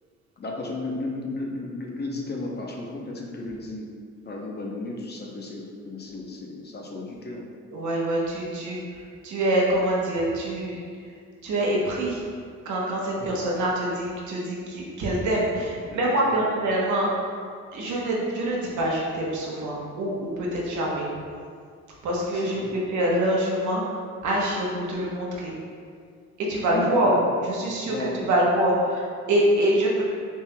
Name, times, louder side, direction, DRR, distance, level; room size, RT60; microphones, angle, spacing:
voice 1, 0.4-3.9 4.3-7.5 13.2-13.3 15.9-16.5 22.3-22.7 26.7-27.4 27.8-28.2, left 2 dB, 35° left, -1 dB, 0.7 m, -34 dB
voice 2, 7.7-8.8 9.2-10.8 11.4-12.2 12.6-17.4 17.7-21.1 22.0-23.8 24.2-25.5 26.4-30.0, right 1 dB, 75° right, -3 dB, 1.0 m, -25 dB
5.4 x 3.2 x 2.2 m, 2.1 s
cardioid pair, 90°, 30 cm